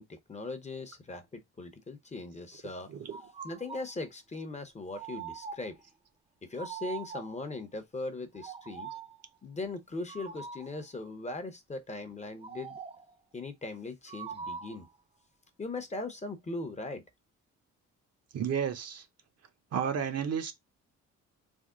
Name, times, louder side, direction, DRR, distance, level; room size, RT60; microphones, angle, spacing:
voice 1, 0.0-2.9 3.4-5.8 6.5-8.9 9.4-12.8 13.3-14.9 15.6-17.0, left 2 dB, 25° left, 0.7 m, -39 dB
sound 1, 3.1-3.9 4.9-5.8 6.6-7.5 8.3-9.2 10.1-10.8 12.4-13.1 14.1-14.9, right 6 dB, 20° right, 0.5 m, -43 dB
voice 2, 18.3-19.0 19.7-20.5, right 7 dB, 55° right, 0.8 m, -32 dB
3.5 x 2.1 x 3.6 m
cardioid pair, 90°, 30 cm